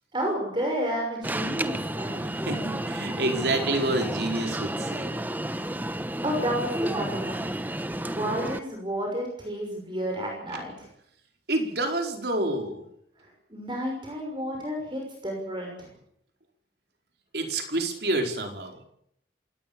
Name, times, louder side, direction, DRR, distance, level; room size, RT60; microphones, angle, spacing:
voice 1, 0.1-2.3 6.2-7.4 8.1-10.9 13.5-15.9, equal, 25° right, 1 dB, 6.1 m, -31 dB
Alarm, 1.2-8.6, right 1 dB, 10° right, 0.9 m, -31 dB
voice 2, 2.3-5.1 11.5-12.8 17.3-18.7, right 2 dB, 60° right, 3 dB, 4.7 m, -28 dB
27.5 x 18.5 x 7.1 m, 0.72 s
head